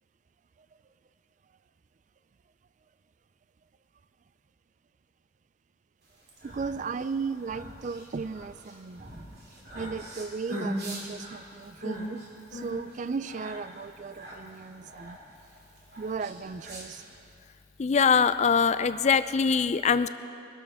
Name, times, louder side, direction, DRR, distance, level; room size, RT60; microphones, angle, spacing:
sound 1, 6.1-17.3, right 1 dB, 55° right, 3.1 m, -40 dB
voice 1, 6.4-9.1 9.7-12.3 12.5-15.2 16.0-17.0, right 5 dB, 40° right, 14 dB, 0.3 m, -36 dB
voice 2, 17.8-20.1, left 6 dB, 35° left, 13 dB, 0.4 m, -22 dB
23.0 x 12.5 x 3.6 m, 2.7 s
head